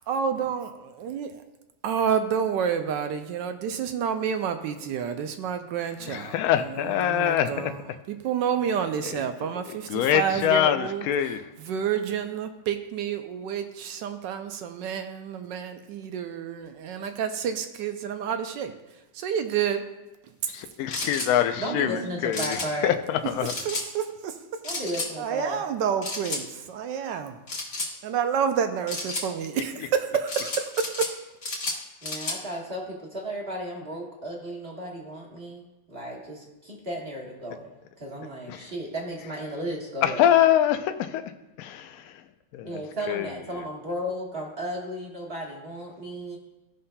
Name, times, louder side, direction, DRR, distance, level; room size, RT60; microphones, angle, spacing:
voice 1, 0.1-1.4 1.8-6.4 6.8-7.8 8.1-11.0 11.7-18.7 19.1-19.8 21.6-22.1 23.7-24.4 25.2-27.4 28.0-31.1, right 7 dB, 75° right, 8 dB, 1.2 m, -29 dB
voice 2, 6.0-8.0 9.0-9.2 9.7-11.5 20.5-23.5 29.6-29.9 38.5-38.7 40.0-41.2 41.6-42.2 42.5-43.3, left 10 dB, 85° left, 8 dB, 0.7 m, -25 dB
sound 1, 20.9-21.3 22.3-22.7 23.5-23.9 24.6-25.1 26.0-26.4 27.5-27.9 28.9-29.3 30.3-31.1 31.4-32.4, left 2 dB, 45° left, 1.6 m, -31 dB
voice 3, 21.6-22.9 24.6-25.6 32.0-40.2 42.6-46.4, equal, 35° right, -2 dB, 1.4 m, -34 dB
16.0 x 5.5 x 2.2 m, 1.0 s
omnidirectional pair, 2.1 m